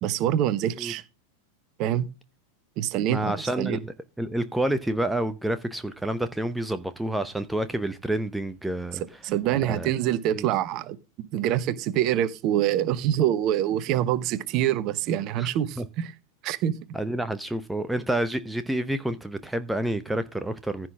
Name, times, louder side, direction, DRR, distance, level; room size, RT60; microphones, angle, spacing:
voice 1, 0.0-1.0 1.8-2.1 2.8-3.8 9.2-16.1 16.4-16.8, right 11 dB, 40° right, 1.1 m, -25 dB
voice 2, 3.1-9.0 9.6-9.9 10.3-10.4 15.4-15.5 15.8-15.9 16.9-20.9, right 1 dB, 5° right, 0.8 m, -29 dB
15.5 x 6.1 x 3.6 m
figure-of-eight pair, 90°, 0 cm